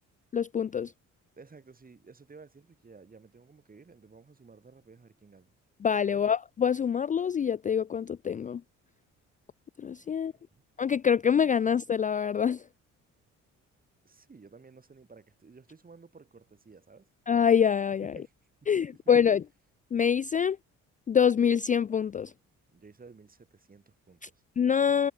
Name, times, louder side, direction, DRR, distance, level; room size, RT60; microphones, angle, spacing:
voice 1, 0.3-0.9 5.8-8.6 9.8-10.3 10.8-12.6 17.3-18.1 18.7-19.4 19.9-20.6 21.1-22.3 24.6-25.1, left 7 dB, 25° left, 0.4 m, -25 dB
voice 2, 1.4-5.5 6.0-6.2 10.1-10.2 10.5-10.6 14.0-17.1 18.0-18.3 18.6-18.9 22.7-24.4, right 4 dB, 30° right, 4.1 m, -54 dB
cardioid pair, 90°, 30 cm